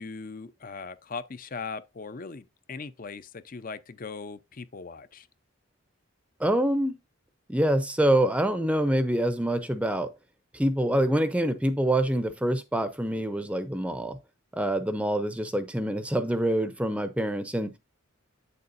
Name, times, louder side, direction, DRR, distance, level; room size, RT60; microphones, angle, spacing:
voice 1, 0.0-5.3, left 4 dB, 45° left, 0.6 m, -39 dB
voice 2, 6.4-7.0 7.5-10.1 10.5-14.2 14.5-17.8, right 1 dB, 5° right, 0.6 m, -26 dB
8.6 x 6.7 x 2.6 m
head